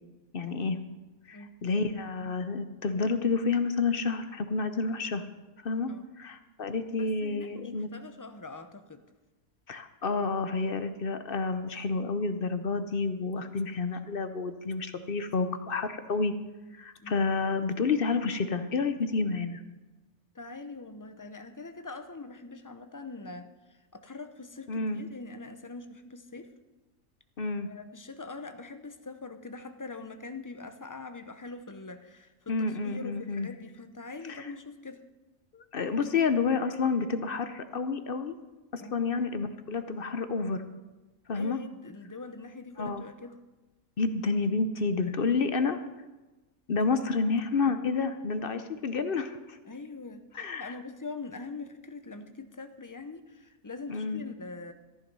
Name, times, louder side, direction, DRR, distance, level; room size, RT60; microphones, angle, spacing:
voice 1, 0.3-0.8 1.3-5.2 5.6-5.9 6.2-7.9 9.7-16.3 16.7-19.6 24.7-25.0 27.4-27.7 32.5-33.5 34.3-34.5 35.5-38.4 38.7-40.6 41.3-41.6 42.8-43.0 44.0-45.8 46.7-49.6 50.3-50.7 53.9-54.2, left 4 dB, 50° left, 10 dB, 0.8 m, -29 dB
voice 2, 6.9-9.0 17.0-17.1 20.3-26.5 27.6-35.0 38.8-38.9 41.3-43.4 49.7-54.7, left 3 dB, 20° left, 8 dB, 0.5 m, -43 dB
14.0 x 11.0 x 5.4 m, 1.1 s
omnidirectional pair, 1.5 m